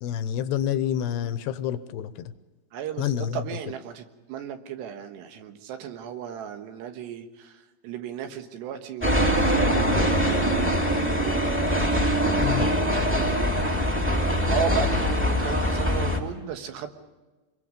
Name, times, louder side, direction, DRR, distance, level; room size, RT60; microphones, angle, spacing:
voice 1, 0.0-2.3 3.0-3.4 12.4-12.7, left 10 dB, 80° left, 12 dB, 2.8 m, -28 dB
voice 2, 2.7-4.0 4.3-7.5 7.8-13.6 14.5-16.9, right 9 dB, 80° right, 6 dB, 3.6 m, -35 dB
sound 1, 9.0-16.2, equal, 5° right, 1.5 m, -23 dB
26.5 x 22.0 x 5.2 m, 1.2 s
omnidirectional pair, 4.9 m